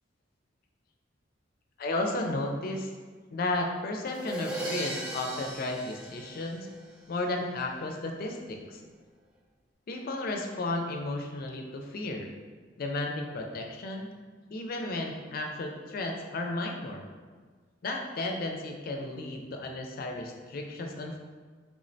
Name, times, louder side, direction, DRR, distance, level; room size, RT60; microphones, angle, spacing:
voice 1, 1.8-2.9 3.3-6.7 7.1-8.8 9.9-12.3 12.8-14.1 14.5-17.1 17.8-21.2, left 2 dB, 50° left, 3 dB, 0.4 m, -33 dB
Crash cymbal, 4.1-7.0, right 1 dB, 5° right, 0.5 m, -38 dB
3.5 x 3.1 x 2.6 m, 1.5 s
head